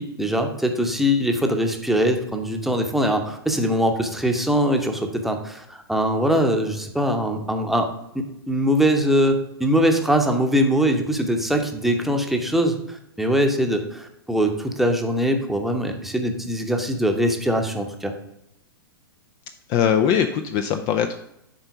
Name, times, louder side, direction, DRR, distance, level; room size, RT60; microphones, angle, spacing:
voice 1, 0.0-7.9 8.5-18.1, equal, ahead, 3 dB, 0.9 m, -22 dB
voice 2, 19.7-21.2, left 8 dB, 30° left, 7 dB, 0.5 m, -21 dB
7.6 x 4.4 x 7.0 m, 0.81 s
figure-of-eight pair, 105°, 13 cm